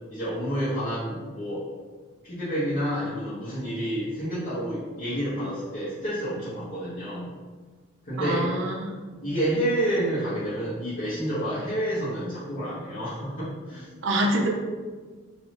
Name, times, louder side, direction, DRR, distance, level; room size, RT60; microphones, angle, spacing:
voice 1, 0.1-1.7 2.2-7.3 8.0-8.5 9.2-13.9, right 1 dB, 40° left, -14 dB, 1.3 m, -29 dB
voice 2, 8.2-9.0 14.0-14.5, right 1 dB, 60° right, 0 dB, 0.6 m, -25 dB
3.4 x 2.9 x 3.8 m, 1.4 s
head